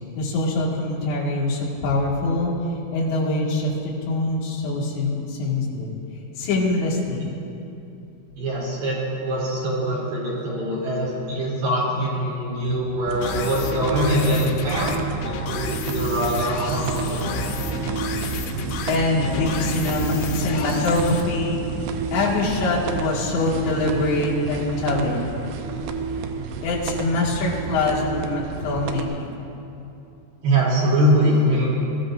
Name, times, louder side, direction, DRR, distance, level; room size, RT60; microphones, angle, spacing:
voice 1, 0.2-2.5 2.9-5.9 6.4-7.2 18.9-21.9 22.1-25.3 26.6-29.3, left 2 dB, 70° left, -6 dB, 4.4 m, -24 dB
voice 2, 8.4-15.0 15.2-17.4 30.4-31.7, equal, 60° right, -7 dB, 4.7 m, -23 dB
sound 1, 13.1-29.1, right 4 dB, 85° right, 2.4 m, -30 dB
sound 2, 13.2-21.2, left 5 dB, 85° left, 3.4 m, -33 dB
21.0 x 14.0 x 2.6 m, 2.9 s
omnidirectional pair, 5.5 m